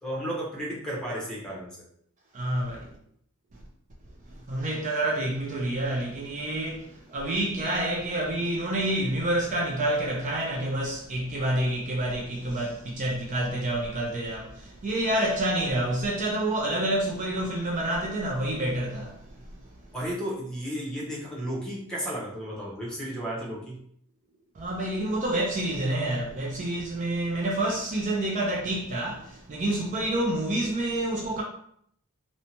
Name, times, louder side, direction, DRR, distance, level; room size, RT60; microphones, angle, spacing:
voice 1, 0.0-1.8 19.9-23.8, equal, 5° left, 0.7 m, -33 dB
voice 2, 2.3-2.9 4.5-19.2 24.6-31.4, right 1 dB, 35° right, 0.4 m, -28 dB
2.7 x 2.1 x 2.8 m
head